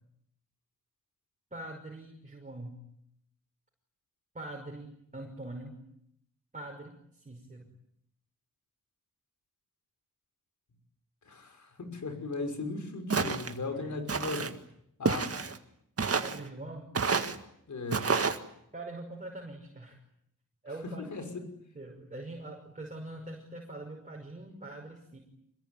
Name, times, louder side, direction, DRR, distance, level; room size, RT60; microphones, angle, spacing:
voice 1, 1.5-2.8 4.3-5.8 6.5-7.7 13.7-14.0 16.2-16.9 18.7-20.0 20.6-21.1 21.4-25.2, right 2 dB, 25° right, 0 dB, 5.8 m, -43 dB
voice 2, 11.3-14.5 15.0-15.3 17.7-18.2 21.1-21.2, left 3 dB, 65° left, 6 dB, 5.9 m, -37 dB
Walk footsteps, 13.1-13.5 14.1-14.5 15.0-15.6 16.0-16.4 16.9-17.4 17.9-18.4, right 5 dB, 50° right, 1.9 m, -29 dB
27.0 x 22.5 x 9.6 m, 0.73 s
wide cardioid pair, 115°, 32 cm